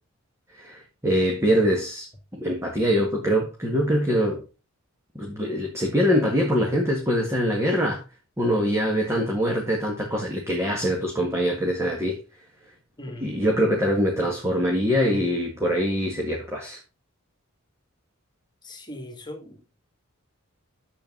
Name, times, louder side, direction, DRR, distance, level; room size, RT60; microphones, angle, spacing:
voice 1, 0.6-4.4 5.2-8.0 8.4-12.2 13.2-16.8, equal, 15° right, 1.8 m, -23 dB
voice 2, 13.0-13.4 18.6-19.6, left 1 dB, 20° left, 2.5 m, -39 dB
10.5 x 7.7 x 3.9 m
head